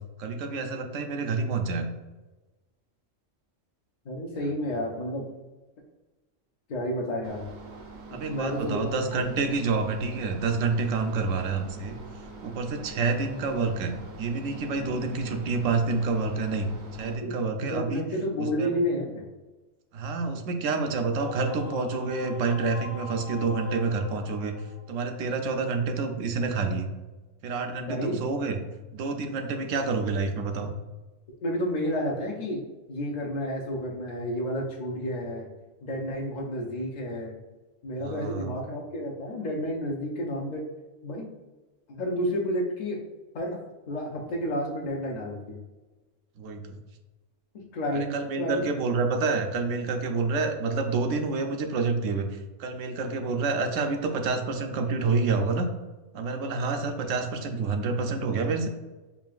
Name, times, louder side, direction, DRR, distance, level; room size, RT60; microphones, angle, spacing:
voice 1, 0.2-1.9 8.1-12.0 12.4-16.7 17.0-18.0 18.4-18.8 19.9-24.5 24.9-26.9 27.4-28.6 28.9-30.7 38.0-38.6 46.4-46.8 47.9-55.7 56.1-58.7, right 4 dB, 80° right, 5 dB, 0.9 m, -28 dB
voice 2, 4.0-5.2 6.7-7.5 8.1-9.2 17.2-17.3 17.6-19.2 27.9-28.2 31.4-32.6 32.9-35.5 35.8-37.3 37.8-40.6 41.0-41.3 41.9-43.0 43.3-43.6 43.9-45.6 47.7-48.6, equal, 50° left, -2 dB, 0.5 m, -31 dB
sound 1, 7.2-17.2, right 3 dB, 60° right, 0.5 m, -44 dB
sound 2, 21.1-25.4, left 3 dB, 65° left, 0.9 m, -40 dB
5.6 x 2.4 x 2.4 m, 1.2 s
omnidirectional pair, 1.3 m